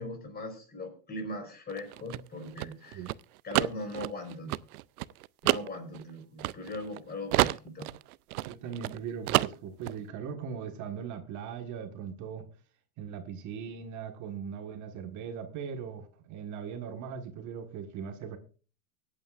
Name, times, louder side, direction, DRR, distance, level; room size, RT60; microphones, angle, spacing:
voice 1, 0.0-3.1 3.4-4.5 5.4-7.9, left 2 dB, 20° left, 4.4 m, -39 dB
sound 1, 1.7-7.0 7.3-9.0 9.3-10.0, right 18 dB, 75° right, 0.6 m, -29 dB
voice 2, 8.5-12.5 13.0-18.4, right 7 dB, 40° right, 1.6 m, -39 dB
24.0 x 8.8 x 2.5 m
hypercardioid pair, 120°, 44 cm